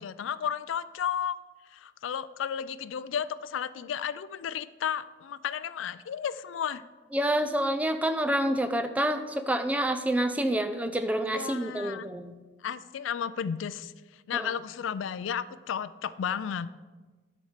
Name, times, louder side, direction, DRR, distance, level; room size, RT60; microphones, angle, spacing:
voice 1, 0.0-1.4 1.7-6.8 11.2-12.1 12.6-13.9 14.3-16.7, left 8 dB, 75° left, 15 dB, 0.4 m, -33 dB
voice 2, 7.1-12.3 14.3-14.5, right 1 dB, 5° right, 9 dB, 0.4 m, -28 dB
10.5 x 4.2 x 6.6 m, 1.3 s
head